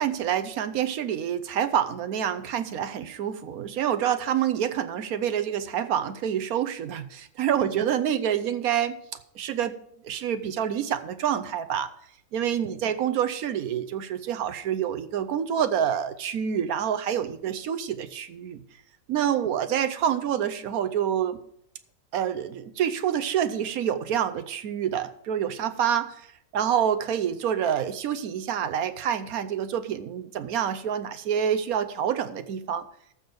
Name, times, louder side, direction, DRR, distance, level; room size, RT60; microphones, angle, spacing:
voice 1, 0.0-9.0 9.3-9.8 10.0-11.9 12.3-18.6 19.1-21.4 22.1-26.3 26.5-32.9, right 9 dB, 65° right, 11 dB, 1.0 m, -27 dB
14.0 x 6.2 x 5.1 m, 0.68 s
omnidirectional pair, 2.0 m